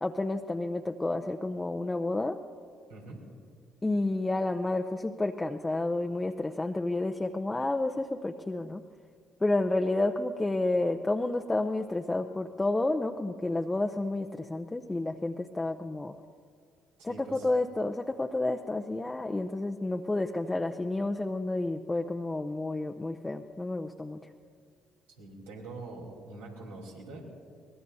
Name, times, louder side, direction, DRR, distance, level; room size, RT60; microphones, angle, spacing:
voice 1, 0.0-2.4 3.8-8.8 9.4-16.1 17.0-24.3, left 2 dB, 20° left, 4 dB, 0.7 m, -30 dB
voice 2, 2.9-3.2 17.0-17.5 25.2-27.3, right 2 dB, 90° right, -3 dB, 3.6 m, -44 dB
23.5 x 20.5 x 2.8 m, 2.1 s
hypercardioid pair, 55°, 0 cm